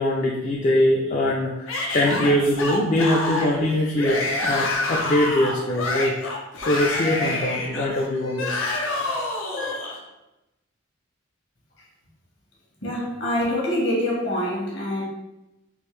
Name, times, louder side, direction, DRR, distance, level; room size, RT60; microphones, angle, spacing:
voice 1, 0.0-6.1 6.7-8.6 9.6-9.7, left 1 dB, 40° left, -2 dB, 0.3 m, -22 dB
Yell / Screaming, 1.7-10.0, left 2 dB, 85° left, 0.7 m, -27 dB
voice 2, 12.8-15.0, left 1 dB, 60° left, -4 dB, 1.1 m, -25 dB
3.5 x 2.5 x 3.1 m, 0.96 s
head